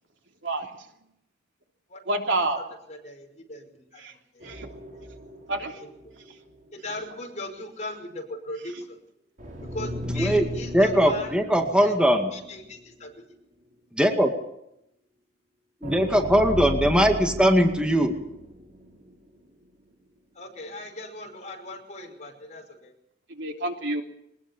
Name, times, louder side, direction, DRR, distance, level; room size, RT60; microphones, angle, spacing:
voice 1, 0.4-0.7 2.1-2.6 4.0-4.1 4.4-4.7 5.5-5.8 23.3-24.0, right 2 dB, 80° right, 2 dB, 3.4 m, -28 dB
voice 2, 2.9-4.5 5.8-5.9 6.7-9.0 9.6-11.4 11.7-11.9 12.3-13.1 20.3-22.9, left 2 dB, 40° left, 2 dB, 5.6 m, -39 dB
sound 1, 4.4-6.5 6.8-6.9 9.4-12.8 13.2-13.3 15.8-19.1, equal, 45° right, 5.2 m, -35 dB
voice 3, 10.7-12.3 13.9-14.3 15.8-18.1, equal, 5° right, 4 dB, 2.1 m, -20 dB
21.5 x 20.0 x 7.2 m, 0.80 s
head